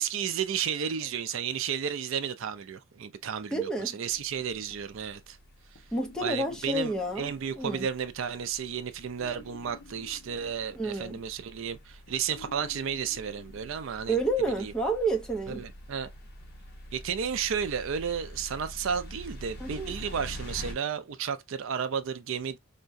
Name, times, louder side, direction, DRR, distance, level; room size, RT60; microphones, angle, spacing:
voice 1, 0.0-5.4 6.2-14.2 14.6-14.7 15.5-16.1 16.9-22.6, right 7 dB, 60° right, 0.4 m, -33 dB
voice 2, 3.5-3.9 5.9-7.9 10.8-11.2 14.1-15.6 19.6-19.9, right 2 dB, 5° left, 0.6 m, -30 dB
sound 1, 4.1-20.7, equal, 45° left, 0.9 m, -47 dB
sound 2, 5.9-7.6 9.2-11.3 12.3-14.4, left 3 dB, 65° left, 0.5 m, -52 dB
4.6 x 2.2 x 2.5 m
head